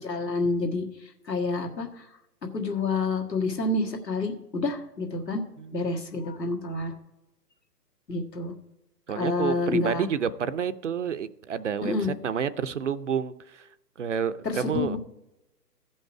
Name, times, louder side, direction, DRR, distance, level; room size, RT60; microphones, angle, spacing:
voice 1, 0.0-2.1 2.5-5.4 5.7-6.9 8.1-8.5 9.1-10.0 11.8-12.1 14.4-15.0, left 3 dB, 85° left, 1 dB, 1.7 m, -28 dB
voice 2, 9.1-13.7 14.0-15.0, right 7 dB, 50° right, 13 dB, 0.5 m, -29 dB
15.0 x 5.4 x 4.6 m, 0.91 s
figure-of-eight pair, 130°, 48 cm